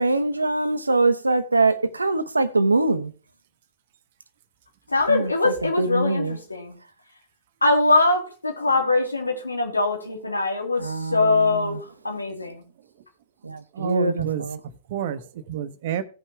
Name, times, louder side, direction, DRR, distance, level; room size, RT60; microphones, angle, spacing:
voice 1, 0.0-3.1 5.1-6.4 10.8-11.6 13.4-14.6, right 3 dB, 90° right, 0.9 m, -23 dB
voice 2, 4.9-6.8 7.6-12.6, left 3 dB, 90° left, 2.8 m, -22 dB
voice 3, 13.7-16.0, right 9 dB, 55° right, 1.0 m, -29 dB
16.5 x 5.6 x 3.4 m
figure-of-eight pair, 110°, 0 cm